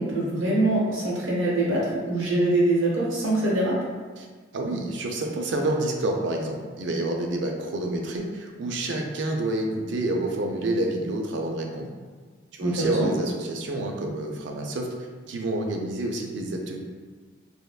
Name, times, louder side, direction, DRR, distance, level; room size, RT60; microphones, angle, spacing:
voice 1, 0.0-3.8 12.6-12.9, right 2 dB, 80° right, -5 dB, 0.9 m, -24 dB
voice 2, 4.5-11.9 12.5-14.9 15.3-16.8, right 1 dB, 60° right, 2 dB, 0.4 m, -28 dB
3.4 x 2.3 x 2.3 m, 1.5 s
head